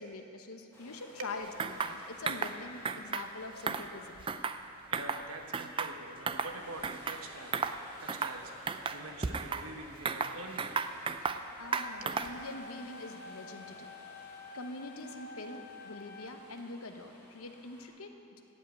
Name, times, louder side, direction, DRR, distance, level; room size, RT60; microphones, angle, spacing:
voice 1, 0.0-4.3 11.6-13.9 14.5-18.5, left 2 dB, 75° left, 6 dB, 1.0 m, -44 dB
sound 1, 0.7-17.9, equal, 10° left, 2.2 m, -55 dB
sound 2, 1.6-2.0 2.3-2.6 2.8-3.3 3.6-4.6 4.9-5.2 5.5-6.5 6.8-7.2 7.5-7.8 8.1-8.4 8.7-9.6 10.1-11.4 11.7-12.4, right 5 dB, 25° right, 0.4 m, -34 dB
voice 2, 4.9-10.8 12.0-12.2, right 2 dB, 70° right, 3 dB, 1.3 m, -45 dB
sound 3, 11.6-16.6, left 3 dB, 45° left, 0.5 m, -49 dB
16.0 x 5.5 x 9.3 m, 2.8 s
head